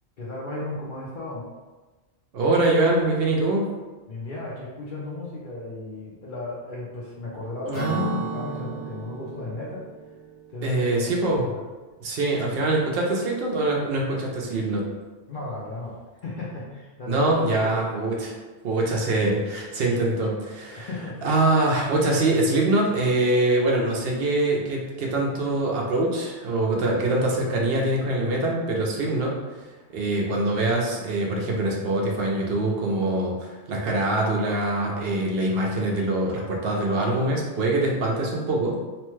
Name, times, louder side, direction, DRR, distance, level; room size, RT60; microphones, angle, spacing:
voice 1, 0.2-1.5 4.1-9.8 10.5-11.2 11.5-11.6 15.3-15.9 16.2-17.8 20.8-21.3, left 2 dB, 55° left, -6 dB, 0.7 m, -35 dB
voice 2, 2.3-3.7 7.7-8.3 10.6-11.5 12.0-14.9 17.1-18.4 18.6-20.9 21.2-29.3 29.9-38.8, right 2 dB, 65° right, -1 dB, 0.8 m, -24 dB
Acoustic guitar / Strum, 7.7-11.4, right 5 dB, 85° left, 1.2 m, -35 dB
3.0 x 2.2 x 3.1 m, 1.2 s
omnidirectional pair, 1.2 m